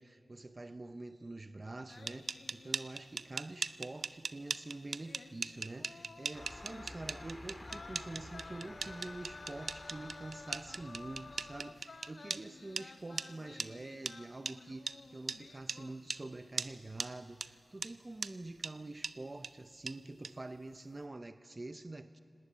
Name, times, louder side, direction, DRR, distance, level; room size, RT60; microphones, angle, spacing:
voice 1, 0.0-22.2, right 2 dB, 35° right, 0.7 m, -46 dB
sound 1, 1.9-3.3 3.6-3.7 5.0-16.4 16.7-17.1, left 4 dB, 65° left, 0.5 m, -54 dB
sound 2, 1.9-12.4 12.8-12.9 13.2-13.3 13.6-13.7 14.1-14.2 14.5-14.6 14.9-15.0 15.3-15.4 15.7-15.8 16.1-16.2 16.6-16.7 17.0-17.1 17.4-17.5 17.8-17.9 18.2-18.3 18.6-18.7 19.0-19.1 19.4-19.5 19.9-20.0 20.2-20.3, right 4 dB, 80° right, 0.5 m, -38 dB
sound 3, 6.3-11.6, left 1 dB, 20° left, 1.9 m, -52 dB
23.0 x 19.0 x 9.3 m
wide cardioid pair, 90°, 0 cm